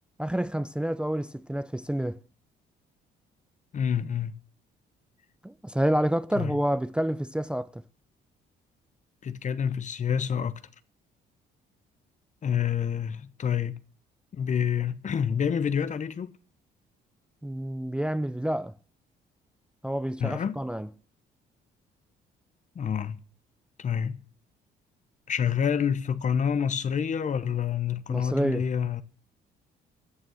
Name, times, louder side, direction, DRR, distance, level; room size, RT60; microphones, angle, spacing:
voice 1, 0.2-2.2 5.4-7.8 17.4-18.7 19.8-20.9 28.1-28.7, right 1 dB, 5° right, 0.6 m, -28 dB
voice 2, 3.7-4.3 6.3-6.5 9.2-10.6 12.4-13.8 14.3-16.4 20.2-20.6 22.7-23.2 23.8-24.2 25.3-29.0, left 7 dB, 40° left, 0.9 m, -28 dB
14.0 x 7.2 x 6.4 m
cardioid pair, 85°, 18 cm